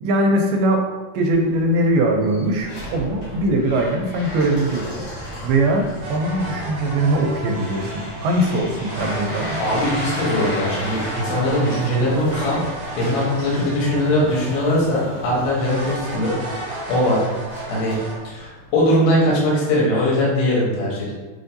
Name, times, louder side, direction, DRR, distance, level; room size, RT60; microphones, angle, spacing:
voice 1, 0.0-0.9 1.1-9.6, right 1 dB, 85° right, 2 dB, 2.5 m, -21 dB
sound 1, 1.3-18.8, equal, 60° left, 1.2 m, -34 dB
sound 2, 6.0-8.2 8.8-15.0 15.5-18.2, right 1 dB, 55° right, 2.0 m, -33 dB
voice 2, 9.6-12.6 13.0-16.3 16.9-17.2 17.7-18.0 18.2-21.1, left 1 dB, 80° left, -5 dB, 3.0 m, -20 dB
7.1 x 2.5 x 2.6 m, 1.3 s
omnidirectional pair, 4.4 m